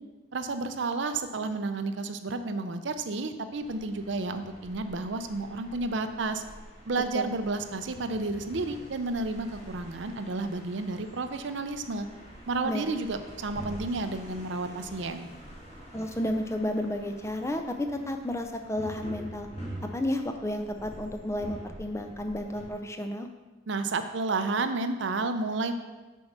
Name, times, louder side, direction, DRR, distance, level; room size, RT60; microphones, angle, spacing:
voice 1, 0.3-6.4 6.9-12.1 12.5-15.3 23.7-25.7, right 3 dB, 60° right, 9 dB, 0.5 m, -31 dB
sound 1, 3.5-22.7, equal, 30° left, 2.0 m, -46 dB
voice 2, 15.9-19.5 19.9-23.3, left 1 dB, 15° left, 5 dB, 0.4 m, -32 dB
8.0 x 4.6 x 5.3 m, 1.2 s
head